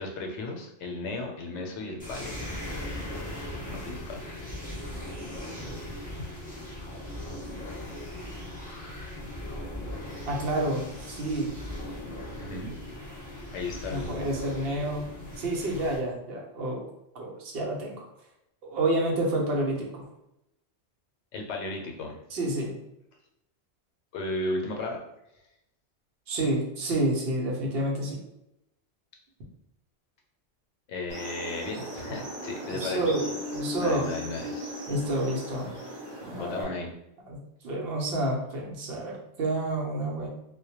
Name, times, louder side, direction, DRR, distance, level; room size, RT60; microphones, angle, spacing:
voice 1, 0.0-2.5 3.6-4.2 12.4-12.8 13.5-14.2 21.3-22.2 24.1-25.0 30.9-33.0 33.8-34.7 36.2-36.9, left 2 dB, 90° left, 2 dB, 0.9 m, -35 dB
sound 1, 2.0-16.0, left 1 dB, 10° left, 0.9 m, -38 dB
voice 2, 10.3-11.5 13.9-16.9 17.1-18.1 18.6-20.1 22.3-22.7 26.3-28.2 32.7-34.1 34.9-35.8 36.3-36.7 37.3-40.3, right 1 dB, 65° right, -1 dB, 0.8 m, -29 dB
sound 2, 31.1-36.6, equal, 35° right, 0.4 m, -37 dB
2.1 x 2.1 x 2.8 m, 0.85 s
omnidirectional pair, 1.1 m